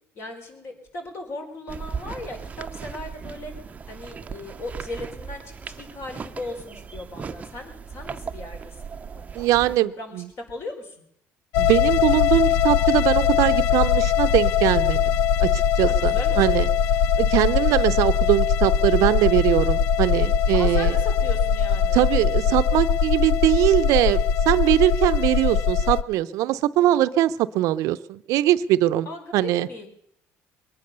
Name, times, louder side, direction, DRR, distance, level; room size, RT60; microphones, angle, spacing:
voice 1, 0.1-3.5 3.9-8.6 9.1-10.9 15.8-16.6 20.5-22.0 29.0-29.9, left 2 dB, 50° left, 4 dB, 4.6 m, -37 dB
sound 1, 1.7-9.8, right 6 dB, 25° right, 0.7 m, -37 dB
voice 2, 9.3-10.3 11.6-16.7 17.2-21.0 21.9-24.2 24.5-29.1 29.3-29.7, right 14 dB, 75° right, 13 dB, 0.6 m, -21 dB
sound 2, 11.5-26.0, left 7 dB, 90° left, 0.5 m, -21 dB
22.0 x 9.6 x 6.8 m, 0.74 s
cardioid pair, 125°, 6 cm